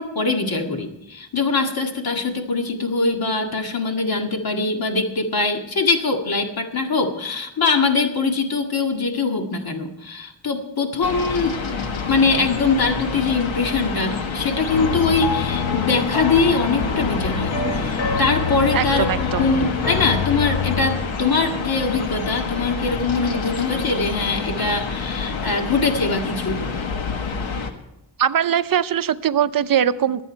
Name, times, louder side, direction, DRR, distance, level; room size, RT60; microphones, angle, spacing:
voice 1, 0.0-11.6 12.1-26.7, left 4 dB, 50° left, 3 dB, 2.0 m, -22 dB
sound 1, 11.0-27.7, left 4 dB, 85° left, 1.5 m, -28 dB
sound 2, 14.7-21.0, left 6 dB, 70° left, 1.5 m, -26 dB
sound 3, 16.6-23.4, left 2 dB, 30° left, 1.3 m, -36 dB
voice 2, 18.7-19.4 28.2-30.2, right 9 dB, 50° right, 13 dB, 0.6 m, -21 dB
23.0 x 8.4 x 4.5 m, 0.88 s
wide cardioid pair, 130°, 45 cm